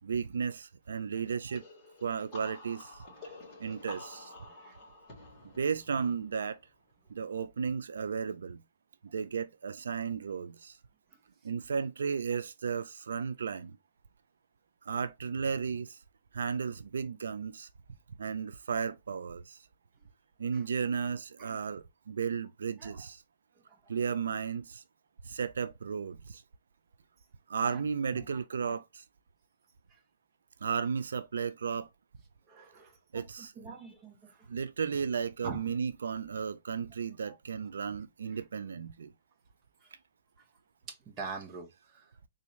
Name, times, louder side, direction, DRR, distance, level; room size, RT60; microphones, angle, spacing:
voice 1, 0.0-1.6 2.0-3.0 3.6-4.3 5.6-6.6 7.1-8.6 9.1-10.8 11.4-13.8 14.8-16.0 16.3-17.7 18.2-19.6 20.4-23.2 23.9-24.8 25.2-26.4 27.5-29.0 30.6-31.9 33.1-33.8 34.5-39.1, right 6 dB, 90° right, 0.4 m, -34 dB
sound 1, 1.5-7.1, left 2 dB, 25° left, 2.0 m, -50 dB
voice 2, 3.0-3.4 4.5-4.9 20.5-20.7 21.4-21.6 22.8-23.1 23.6-23.9 27.6-27.8 28.1-28.2 28.6-28.8 29.9-30.0 32.5-34.5 35.4-35.7 37.3-37.4 38.3-38.4 39.8-39.9 40.4-40.5 40.9-42.1, right 4 dB, 20° right, 0.9 m, -46 dB
3.8 x 2.6 x 3.0 m
hypercardioid pair, 160°, 0 cm